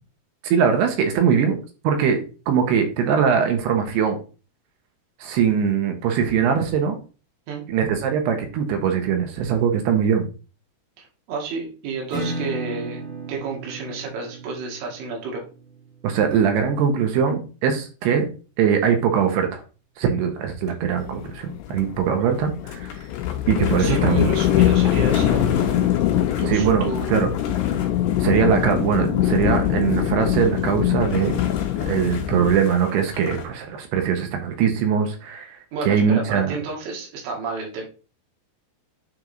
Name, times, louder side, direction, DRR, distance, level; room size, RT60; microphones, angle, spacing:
voice 1, 0.5-1.6 1.8-2.2 2.5-4.2 5.2-7.0 7.7-10.3 16.0-18.3 18.6-19.6 20.0-22.9 23.5-24.3 26.5-27.3 28.2-31.4 31.8-35.6 35.9-36.6, right 7 dB, 75° right, 5 dB, 2.9 m, -21 dB
voice 2, 11.0-15.4 23.7-25.8 26.4-27.2 35.7-37.9, right 4 dB, 90° right, 0 dB, 4.4 m, -31 dB
Acoustic guitar / Strum, 12.1-17.5, right 2 dB, 30° right, 1.6 m, -36 dB
sound 1, 20.6-21.3 21.6-21.8 22.3-22.4 22.7-33.5, left 6 dB, 65° left, 2.7 m, -37 dB
sound 2, 21.0-32.6, left 12 dB, 85° left, 2.7 m, -23 dB
9.2 x 3.5 x 3.8 m, 0.34 s
omnidirectional pair, 5.1 m